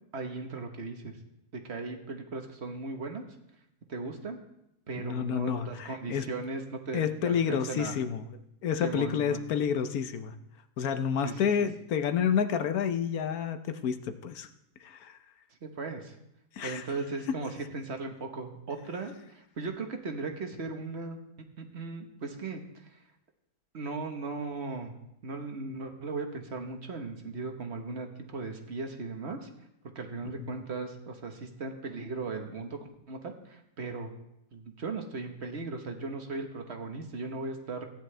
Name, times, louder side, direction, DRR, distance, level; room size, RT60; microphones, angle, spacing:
voice 1, 0.1-1.2 1.6-3.2 3.9-4.4 4.9-7.9 8.8-9.4 11.2-11.5 15.6-16.1 16.6-21.2 21.6-23.0 23.7-24.9 25.2-28.1 28.3-29.5 29.9-32.8 33.1-34.1 34.5-37.8, right 3 dB, 45° right, 4 dB, 1.4 m, -37 dB
voice 2, 5.0-6.3 6.9-8.3 8.6-10.3 10.8-14.5 14.8-15.2 16.6-16.8 30.4-30.5, left 7 dB, 70° left, 9 dB, 1.2 m, -29 dB
16.5 x 10.5 x 3.3 m, 0.84 s
omnidirectional pair, 1.7 m